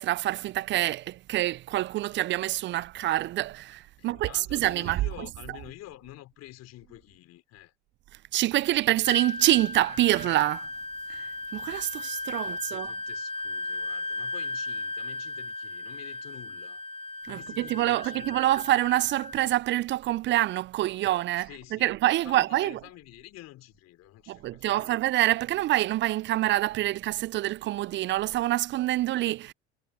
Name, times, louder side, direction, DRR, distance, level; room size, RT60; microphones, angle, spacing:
voice 1, 0.0-5.3 8.3-10.7 11.1-11.3 11.5-12.9 17.3-22.8 24.3-29.5, right 15 dB, 35° right, 0.5 m, -26 dB
voice 2, 4.0-7.7 12.4-16.8 17.3-18.6 21.4-22.0 22.2-25.0, left 16 dB, 50° left, 4.2 m, -48 dB
Wind instrument woodwind instrument, 9.0-19.4, left 2 dB, 15° left, 1.2 m, -36 dB
figure-of-eight pair, 70°, 33 cm